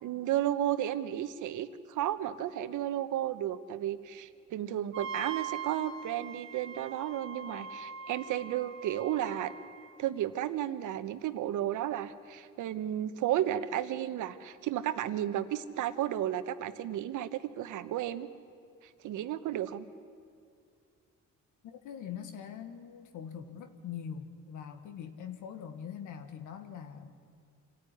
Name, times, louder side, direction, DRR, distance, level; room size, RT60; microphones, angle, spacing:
voice 1, 0.0-9.5 10.0-18.3 19.0-19.9, right 12 dB, 85° right, 12 dB, 1.1 m, -33 dB
Wind instrument woodwind instrument, 4.9-9.9, right 5 dB, 40° right, 2.2 m, -42 dB
voice 2, 21.6-27.2, left 8 dB, 85° left, 8 dB, 1.8 m, -43 dB
25.5 x 14.5 x 10.0 m, 2.4 s
cardioid pair, 90°, 30 cm